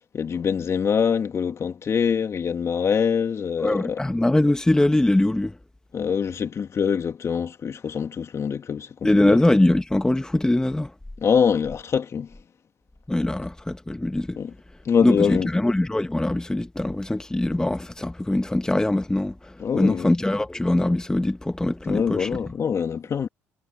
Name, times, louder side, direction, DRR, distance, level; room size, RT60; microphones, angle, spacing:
voice 1, 0.1-4.0 5.9-9.4 11.2-12.3 14.4-14.5 14.8-15.5 19.6-20.1 21.8-23.3, left 7 dB, 45° left, 2.6 m, -24 dB
voice 2, 3.6-5.6 9.0-10.9 13.1-14.4 15.0-22.3, left 1 dB, 10° left, 1.4 m, -22 dB
supercardioid pair, 65°, 7 cm